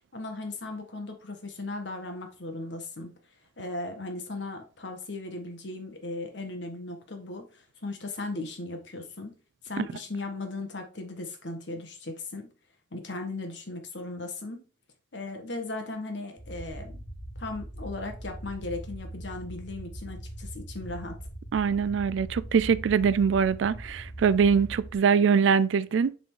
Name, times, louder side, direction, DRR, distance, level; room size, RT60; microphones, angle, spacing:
voice 1, 0.1-3.1 3.6-9.3 9.6-12.5 12.9-14.6 15.1-17.0 17.4-21.2, left 2 dB, 70° left, 1.4 m, -37 dB
sound 1, 16.4-25.0, right 1 dB, 45° left, 2.4 m, -41 dB
voice 2, 21.5-26.2, right 6 dB, 80° right, 0.4 m, -23 dB
7.6 x 4.0 x 3.7 m
head